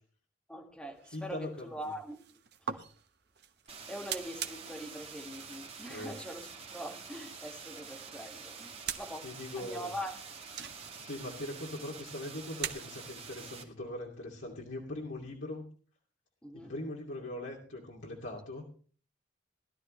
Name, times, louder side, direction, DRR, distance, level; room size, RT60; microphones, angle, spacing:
voice 1, 0.5-2.2 2.6-2.8 3.9-10.2 16.4-16.7, equal, 5° left, 1.8 m, -43 dB
sound 1, 0.9-13.3, right 8 dB, 55° right, 1.1 m, -46 dB
voice 2, 1.1-1.9 5.9-6.1 9.2-9.9 11.0-15.6 16.5-18.6, left 1 dB, 75° left, 2.6 m, -41 dB
sound 2, 3.7-13.6, right 5 dB, 30° right, 2.1 m, -47 dB
18.5 x 12.0 x 3.2 m
head